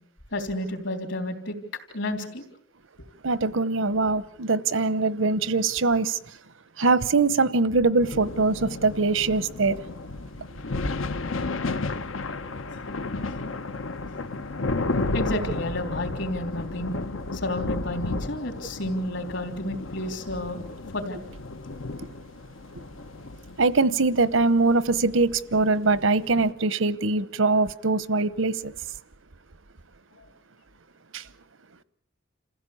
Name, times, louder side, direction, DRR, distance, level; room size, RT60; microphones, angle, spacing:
voice 1, 0.3-1.6 1.9-2.4 15.1-16.9 17.3-20.7 20.9-21.2 30.2-30.3, left 1 dB, 65° left, 3.6 m, -31 dB
voice 2, 3.2-6.2 6.8-9.8 23.6-28.7 31.1-31.2, right 3 dB, 75° right, 1.0 m, -22 dB
sound 1, 8.0-26.5, left 3 dB, 80° left, 1.1 m, -33 dB
28.0 x 15.5 x 8.5 m
head